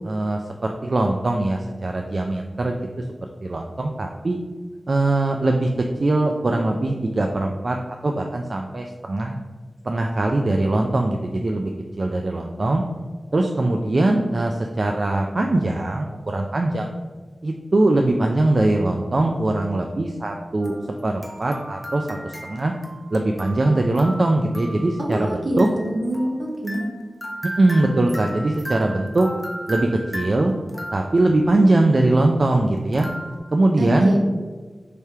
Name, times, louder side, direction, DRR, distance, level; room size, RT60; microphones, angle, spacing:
voice 1, 0.0-3.1 3.4-4.4 4.9-7.8 8.0-9.4 9.8-11.7 12.0-12.8 13.3-16.9 17.4-20.8 21.0-22.7 23.1-25.7 27.6-29.3 29.7-30.5 30.9-33.1 33.5-34.1, right 2 dB, 50° right, 3 dB, 0.3 m, -21 dB
sound 1, 20.6-31.5 32.9-33.4, equal, ahead, 0.7 m, -36 dB
voice 2, 25.0-26.8 33.8-34.2, right 1 dB, 70° right, -1 dB, 0.9 m, -25 dB
3.4 x 2.8 x 4.5 m, 1.4 s
wide cardioid pair, 65°, 0 cm